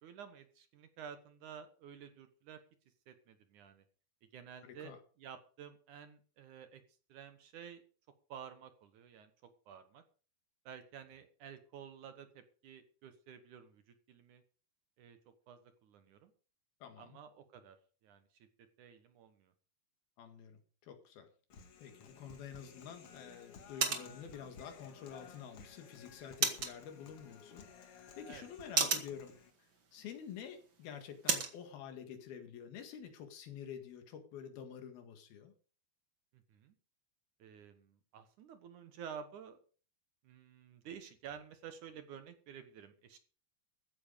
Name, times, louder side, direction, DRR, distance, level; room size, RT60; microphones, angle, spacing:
voice 1, 0.0-2.6 3.1-3.8 4.3-6.8 7.1-7.8 8.3-9.3 9.7-10.0 10.7-13.8 14.1-14.4 15.0-15.2 15.5-16.3 17.0-17.8 18.0-19.5 28.3-28.5 36.3-36.7 37.4-39.6 40.2-43.2, right 8 dB, 65° right, 9 dB, 2.4 m, -52 dB
voice 2, 4.6-5.0 16.8-17.2 20.2-21.3 21.8-29.3 29.6-35.5, left 8 dB, 80° left, 7 dB, 3.8 m, -49 dB
Human voice, 21.5-29.5, left 6 dB, 55° left, 1.9 m, -56 dB
sound 1, 22.1-31.6, right 5 dB, 40° right, 2.0 m, -40 dB
14.5 x 9.6 x 5.2 m, 0.39 s
omnidirectional pair, 4.3 m